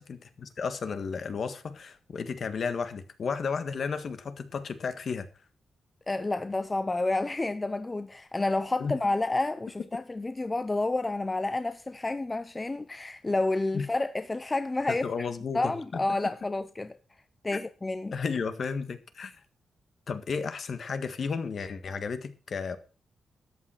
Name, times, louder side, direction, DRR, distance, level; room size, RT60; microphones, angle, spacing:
voice 1, 0.0-5.3 8.8-8.9 13.7-13.8 14.9-16.0 18.1-19.3 20.1-22.8, left 5 dB, 50° left, 1.6 m, -33 dB
voice 2, 6.1-15.3 15.5-17.0 17.4-18.1, left 2 dB, 20° left, 0.6 m, -30 dB
13.0 x 8.9 x 5.8 m
wide cardioid pair, 140°, 0 cm